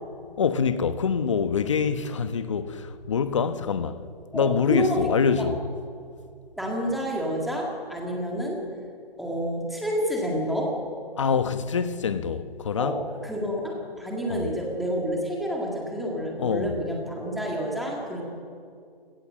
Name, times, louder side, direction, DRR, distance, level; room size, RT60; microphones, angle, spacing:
voice 1, 0.4-4.0 4.3-5.7 11.2-13.0 14.3-14.5 16.4-16.8, left 6 dB, 30° left, 1.1 m, -25 dB
voice 2, 4.3-5.0 6.6-8.6 9.2-10.8 12.8-18.2, equal, ahead, 1.8 m, -29 dB
27.0 x 18.0 x 7.5 m
hypercardioid pair, 170°, 29 cm